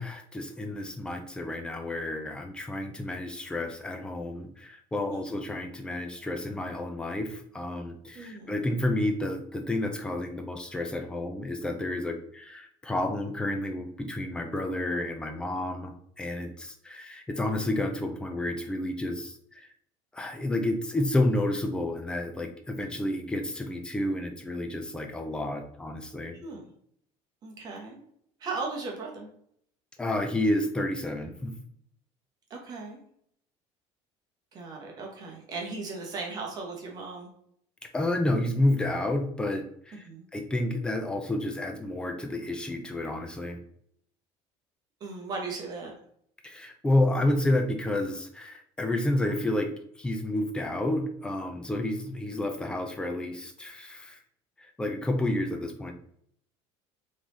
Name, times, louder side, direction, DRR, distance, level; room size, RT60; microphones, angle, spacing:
voice 1, 0.0-19.7 20.1-26.3 30.0-31.5 37.9-40.0 40.3-43.6 46.4-49.7 50.0-54.2 54.6-55.9, left 1 dB, 5° left, 4 dB, 0.4 m, -30 dB
voice 2, 8.1-8.6 26.4-26.7 27.4-28.1 28.4-29.3 32.5-33.0 34.5-37.3 40.0-40.3 45.0-45.9, right 3 dB, 35° right, 0 dB, 1.0 m, -37 dB
3.8 x 3.2 x 4.0 m, 0.67 s
cardioid pair, 180°, 12 cm